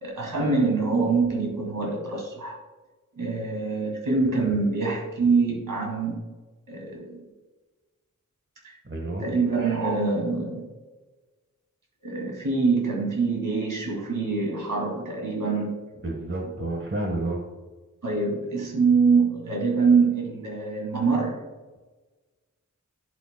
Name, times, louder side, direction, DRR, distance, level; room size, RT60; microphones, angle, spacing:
voice 1, 0.0-2.6 3.2-6.2 6.7-7.2 8.6-8.8 9.2-10.6 12.0-15.8 18.0-21.4, right 4 dB, 90° right, -1 dB, 2.3 m, -24 dB
voice 2, 8.8-9.2 16.0-17.4, right 2 dB, 40° right, 1 dB, 1.4 m, -30 dB
10.0 x 7.8 x 2.2 m, 1.2 s
wide cardioid pair, 55°, 31 cm